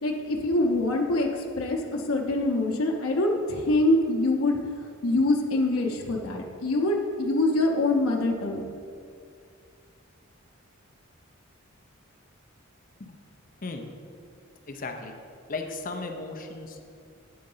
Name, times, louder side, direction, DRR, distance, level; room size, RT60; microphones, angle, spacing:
voice 1, 0.0-4.6 5.0-8.6, left 2 dB, 85° left, 1 dB, 0.7 m, -25 dB
voice 2, 14.7-15.1 15.5-16.8, left 3 dB, 40° left, 4 dB, 0.6 m, -35 dB
8.6 x 3.9 x 5.5 m, 2.4 s
head